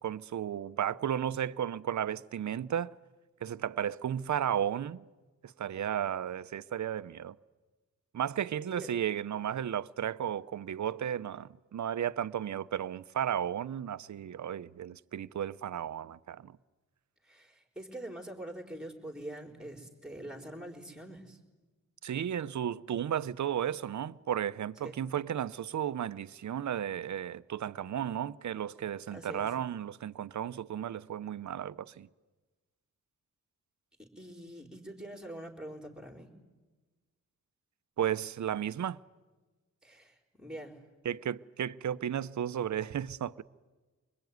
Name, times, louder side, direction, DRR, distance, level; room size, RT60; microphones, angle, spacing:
voice 1, 0.0-2.9 3.4-5.0 5.4-7.4 8.1-16.6 22.0-32.1 38.0-39.0 41.0-43.4, right 9 dB, 65° right, 0.7 m, -34 dB
voice 2, 17.2-21.4 24.8-24.9 29.1-29.5 34.0-36.4 39.8-40.8, right 1 dB, ahead, 4.4 m, -44 dB
25.0 x 21.0 x 9.5 m
cardioid pair, 80°, 31 cm